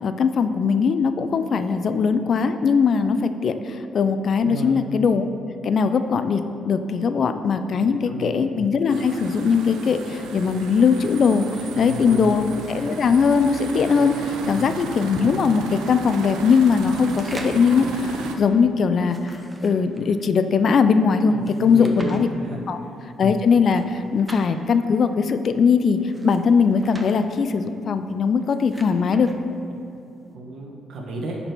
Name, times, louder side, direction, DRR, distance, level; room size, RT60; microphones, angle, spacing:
voice 1, 0.0-5.2 5.6-19.4 19.6-22.3 22.7-22.8 23.2-26.0 26.2-29.3, left 5 dB, 55° left, 9 dB, 0.4 m, -20 dB
voice 2, 4.4-4.8 7.7-8.3 11.7-12.4 14.4-14.7 21.3-22.6 22.9-23.0 30.3-31.4, right 2 dB, 70° right, 0 dB, 1.4 m, -33 dB
sound 1, 8.9-18.4, right 4 dB, 90° right, 0.7 m, -34 dB
sound 2, 14.7-15.2 16.4-17.7 18.9-20.2 21.4-22.2 23.6-24.5 26.0-27.1 28.3-29.4, right 1 dB, 15° right, 0.9 m, -42 dB
10.5 x 4.3 x 4.5 m, 2.7 s
cardioid pair, 90°, 0 cm